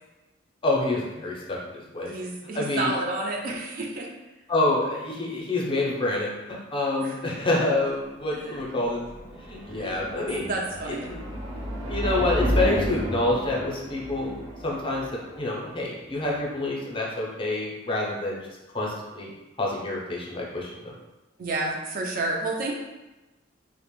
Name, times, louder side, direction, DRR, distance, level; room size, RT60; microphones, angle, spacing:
voice 1, 0.6-2.1 2.5-2.9 4.5-9.1 9.4-10.5 11.1-11.2 11.9-14.4 14.6-15.1 15.4-18.4 18.7-19.3 19.6-20.9, left 2 dB, 25° left, -3 dB, 0.5 m, -27 dB
voice 2, 2.1-4.1 7.0-7.2 8.3-8.6 9.7-11.1 21.4-22.7, right 2 dB, 45° right, 0 dB, 0.3 m, -31 dB
sound 1, 7.9-16.9, equal, 65° right, 0.8 m, -32 dB
2.4 x 2.0 x 3.0 m, 1.1 s
head